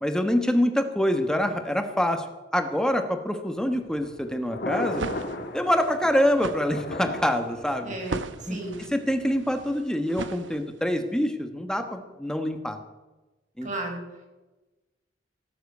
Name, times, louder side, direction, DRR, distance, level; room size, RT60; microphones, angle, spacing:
voice 1, 0.0-2.3 2.5-5.1 5.5-7.9 8.5-12.8 13.6-13.7, equal, 5° left, 7 dB, 1.3 m, -25 dB
Thunder, 3.7-9.8, left 2 dB, 60° left, 1.8 m, -37 dB
sound 1, 4.7-11.0, right 3 dB, 85° right, 0.9 m, -38 dB
voice 2, 7.8-8.8 13.6-14.0, right 2 dB, 45° right, 1 dB, 4.6 m, -34 dB
18.0 x 8.0 x 8.0 m, 1.1 s
head